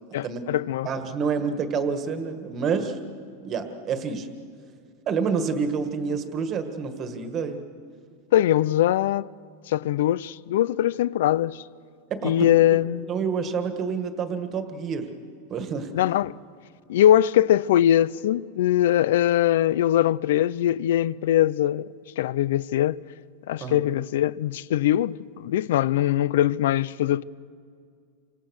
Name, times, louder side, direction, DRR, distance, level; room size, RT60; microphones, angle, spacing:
voice 1, 0.1-0.9 8.3-9.3 9.7-11.6 12.2-13.1 15.9-16.4 16.9-21.9 22.2-23.0 23.5-27.2, left 12 dB, 70° left, 0.5 m, -22 dB
voice 2, 0.9-3.0 3.4-4.3 5.1-7.6 12.1-12.5 13.1-15.1 15.5-15.9 23.6-23.8, right 5 dB, 25° right, 1.7 m, -28 dB
29.0 x 25.0 x 6.5 m
supercardioid pair, 170°, 0 cm